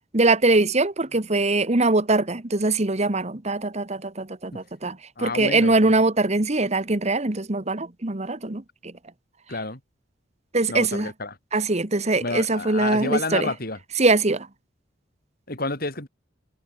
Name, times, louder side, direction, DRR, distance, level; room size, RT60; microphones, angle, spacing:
voice 1, 0.1-8.9 10.5-11.1 11.5-13.5 14.0-14.5, right 2 dB, 35° right, 1.4 m, -22 dB
voice 2, 5.2-5.9 9.5-9.8 10.7-11.4 12.2-13.8 15.5-16.1, left 2 dB, 50° left, 6.0 m, -30 dB
head